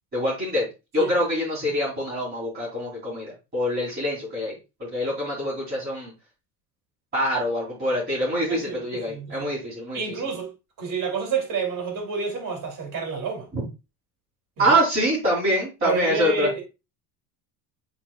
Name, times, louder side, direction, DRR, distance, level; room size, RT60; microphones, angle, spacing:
voice 1, 0.1-0.7 0.9-4.5 4.8-6.1 7.1-10.0 13.5-13.6 14.6-16.5, equal, 20° right, 3.5 m, -25 dB
voice 2, 8.5-9.5 9.9-10.5 10.8-13.5 14.6-14.8 15.8-16.6, right 5 dB, 40° right, 2.9 m, -29 dB
8.7 x 4.4 x 2.4 m
cardioid pair, 150°, 48 cm